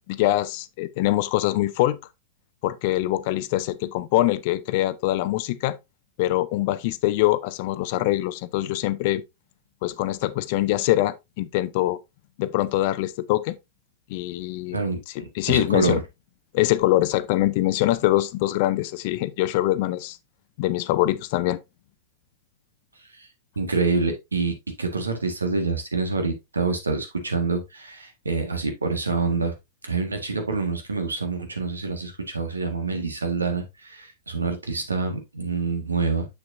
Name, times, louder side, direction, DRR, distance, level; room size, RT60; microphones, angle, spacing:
voice 1, 0.1-2.0 2.6-5.8 6.2-9.2 9.8-12.0 12.4-13.6 14.1-14.8 15.4-16.0 16.5-20.2 20.6-21.6, left 15 dB, 50° left, 0.6 m, -23 dB
voice 2, 14.7-16.0 23.2-23.3 23.5-29.5 29.8-36.3, right 4 dB, 80° right, 1.6 m, -26 dB
7.1 x 6.7 x 2.6 m
figure-of-eight pair, 100°, 0 cm